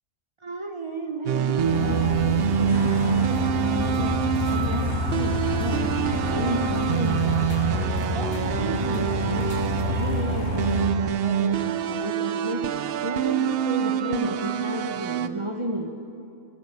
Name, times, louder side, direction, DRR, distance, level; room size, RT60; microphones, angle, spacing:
voice 1, 0.4-7.8 8.1-15.9, right 1 dB, 30° right, 5 dB, 0.8 m, -32 dB
sound 1, 1.3-15.3, right 10 dB, 60° right, 0.7 m, -26 dB
sound 2, 1.6-10.9, left 2 dB, 85° left, 1.9 m, -28 dB
sound 3, 1.8-10.8, left 3 dB, 65° left, 1.9 m, -41 dB
16.5 x 11.5 x 6.7 m, 2.7 s
omnidirectional pair, 1.3 m